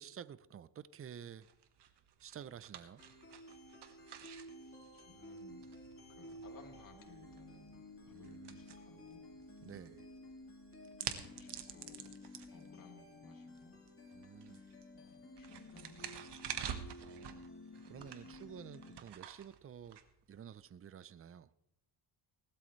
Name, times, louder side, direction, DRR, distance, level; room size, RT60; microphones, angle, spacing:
voice 1, 0.0-1.5 2.2-3.0 8.1-8.6 9.6-10.1 14.1-14.6 16.9-17.4 17.9-20.0 20.3-21.5, right 8 dB, 30° right, 0.6 m, -51 dB
sound 1, 1.4-20.7, right 9 dB, 65° right, 1.6 m, -50 dB
sound 2, 3.0-19.0, left 1 dB, 30° left, 4.0 m, -54 dB
voice 2, 4.6-5.7 6.1-9.9 11.3-12.2 12.5-13.8 14.9-16.4 18.2-18.5, left 4 dB, 50° left, 3.6 m, -61 dB
19.0 x 13.0 x 3.3 m
cardioid pair, 85°, 43 cm